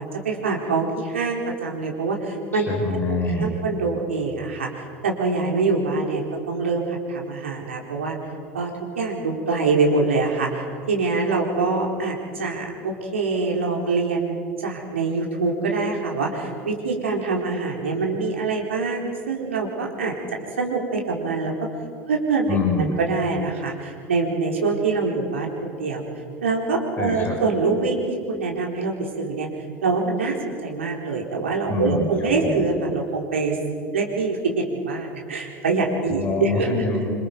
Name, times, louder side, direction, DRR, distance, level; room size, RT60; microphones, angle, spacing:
voice 1, 0.0-2.7 3.1-8.2 8.5-20.1 20.6-21.7 22.1-22.5 22.8-26.0 26.4-29.5 29.8-33.6 33.9-36.7, right 3 dB, 75° right, 0 dB, 4.2 m, -24 dB
voice 2, 2.7-3.5 22.5-23.0 27.0-27.3 31.7-32.1 32.4-32.6 36.1-37.1, left 3 dB, 30° left, 1 dB, 5.8 m, -25 dB
27.5 x 26.0 x 5.4 m, 2.1 s
figure-of-eight pair, 75°, 7 cm